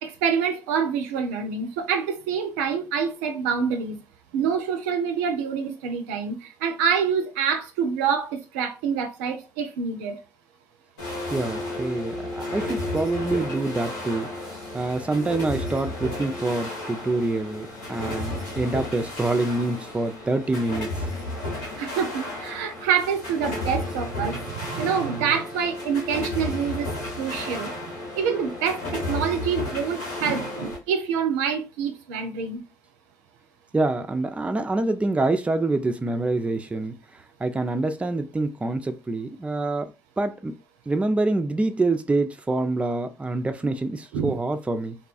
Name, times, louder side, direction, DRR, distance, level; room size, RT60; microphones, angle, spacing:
voice 1, 0.0-4.0 4.3-10.2 21.8-26.9 27.2-27.7 28.1-32.6 43.6-43.7 44.1-44.3, right 7 dB, 80° right, 0.4 m, -26 dB
sound 1, 11.0-30.8, left 1 dB, 90° left, 1.6 m, -33 dB
voice 2, 11.3-14.3 14.7-20.9 33.7-40.5 40.9-45.0, right 2 dB, 15° right, 0.4 m, -26 dB
2.6 x 2.2 x 2.4 m
hypercardioid pair, 50°, 9 cm